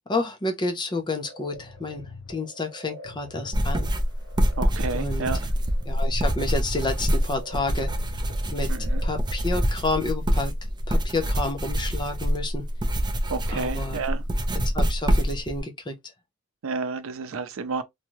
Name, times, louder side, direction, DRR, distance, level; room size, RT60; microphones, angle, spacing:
voice 1, 0.1-3.9 4.9-5.3 5.9-7.9 8.5-8.7 9.0-10.5 10.9-12.6 13.5-14.0 14.7-15.9, left 2 dB, 20° left, 0.6 m, -30 dB
sound 1, 1.2-9.8, left 2 dB, 65° left, 1.1 m, -44 dB
sound 2, 3.5-15.6, equal, 20° right, 0.5 m, -25 dB
voice 2, 4.6-5.4 8.7-9.0 13.3-14.2 16.6-17.8, right 4 dB, 70° right, 0.5 m, -30 dB
2.7 x 2.3 x 3.0 m
head